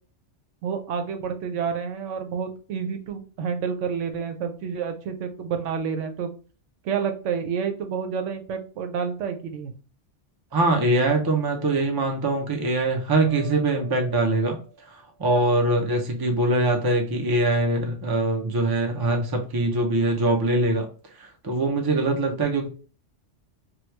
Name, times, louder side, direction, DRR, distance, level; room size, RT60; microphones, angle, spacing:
voice 1, 0.6-6.3 6.8-9.7, right 6 dB, 85° right, 7 dB, 0.9 m, -29 dB
voice 2, 10.5-14.6 14.9-20.9 21.2-22.7, right 2 dB, 30° right, 2 dB, 0.5 m, -23 dB
sound 1, 13.3-15.1, right 4 dB, ahead, 1.2 m, -44 dB
3.0 x 2.3 x 3.2 m, 0.38 s
omnidirectional pair, 1.2 m